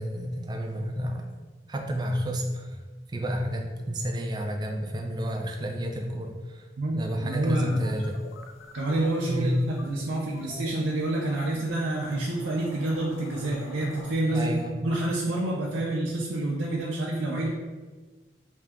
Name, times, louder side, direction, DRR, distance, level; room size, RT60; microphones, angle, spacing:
voice 1, 0.0-1.4 1.7-2.8 3.1-6.6 6.9-8.2 9.3-9.6 14.3-14.8, equal, 20° right, 3 dB, 0.3 m, -30 dB
voice 2, 6.8-7.8 8.7-17.5, right 2 dB, 80° right, -4 dB, 0.5 m, -28 dB
sound 1, 7.3-14.1, left 3 dB, 75° left, 0.4 m, -47 dB
3.4 x 2.8 x 3.4 m, 1.3 s
head